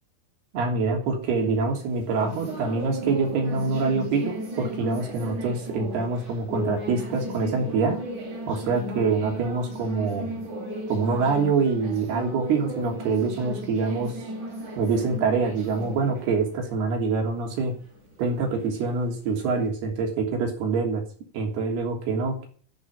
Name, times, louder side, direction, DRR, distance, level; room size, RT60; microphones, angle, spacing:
voice 1, 0.5-8.0 8.5-10.4 10.9-14.1 14.8-17.7 18.2-21.0 21.3-22.5, right 4 dB, 75° right, 1 dB, 5.1 m, -25 dB
sound 1, 1.3-19.7, equal, 45° right, 5.2 m, -36 dB
14.0 x 8.3 x 7.4 m, 0.44 s
omnidirectional pair, 4.6 m